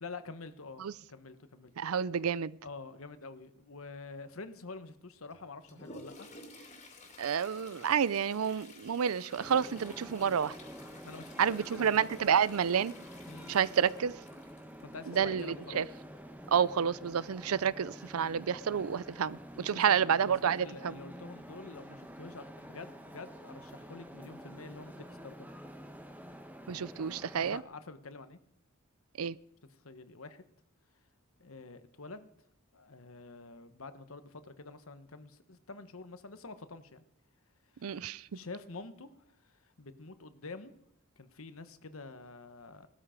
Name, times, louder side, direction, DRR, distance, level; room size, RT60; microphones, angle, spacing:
voice 1, 0.0-1.7 2.6-6.3 11.0-11.9 13.3-13.5 14.8-15.8 19.6-25.5 27.4-28.4 29.8-30.4 31.4-32.3 32.7-37.0 37.7-38.1 38.3-40.7 41.2-42.9, left 3 dB, 70° left, 1.2 m, -47 dB
voice 2, 1.8-2.6 7.2-10.6 11.4-12.9 13.5-14.2 15.1-15.9 16.5-20.9 26.7-27.6 29.2-29.4 37.8-38.3, right 7 dB, 80° right, 0.5 m, -29 dB
Toilet flush, 5.3-17.3 19.1-19.2 19.6-19.7 20.4-20.5 21.2-21.4 21.9-22.0, left 2 dB, 35° left, 2.7 m, -53 dB
sound 1, 9.4-27.6, equal, 10° right, 1.2 m, -49 dB
17.5 x 13.0 x 5.1 m
head